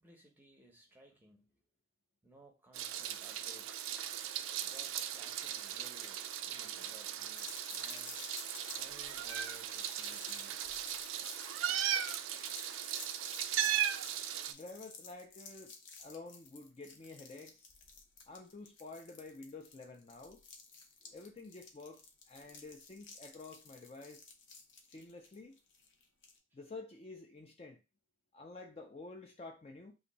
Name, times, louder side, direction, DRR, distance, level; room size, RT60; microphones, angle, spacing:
voice 1, 0.0-1.5 2.2-3.7 4.6-8.2 8.7-10.6 21.0-21.2, right 1 dB, 10° right, 0.6 m, -60 dB
Meow, 2.7-14.5, right 10 dB, 85° right, 0.3 m, -38 dB
sound 1, 7.4-26.4, left 4 dB, 65° left, 0.7 m, -53 dB
voice 2, 14.5-17.7 18.3-20.4 21.1-24.3 24.9-25.6 26.5-27.8 28.3-29.9, left 3 dB, 30° left, 0.3 m, -50 dB
2.8 x 2.6 x 4.0 m
head